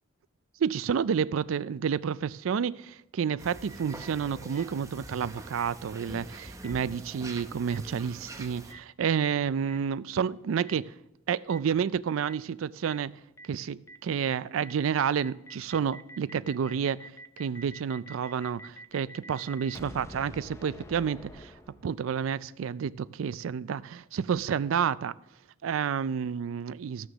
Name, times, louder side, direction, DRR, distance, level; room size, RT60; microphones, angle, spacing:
voice 1, 0.6-10.9 11.3-13.1 13.4-21.5 21.8-25.1 25.6-27.1, right 7 dB, 85° right, 0.4 m, -30 dB
sound 1, 3.4-8.7, right 2 dB, 15° right, 0.8 m, -44 dB
Boom, 4.5-4.6 5.6-5.7 6.6-6.7 7.7-7.8 8.7-8.8 9.7-9.8 10.7-10.8 11.5-11.6 12.3-12.4 12.9-13.0 13.4-13.5 13.9-14.0 14.3-14.4 14.6-22.2, right 1 dB, 15° left, 0.5 m, -46 dB
14.5 x 6.4 x 6.1 m
head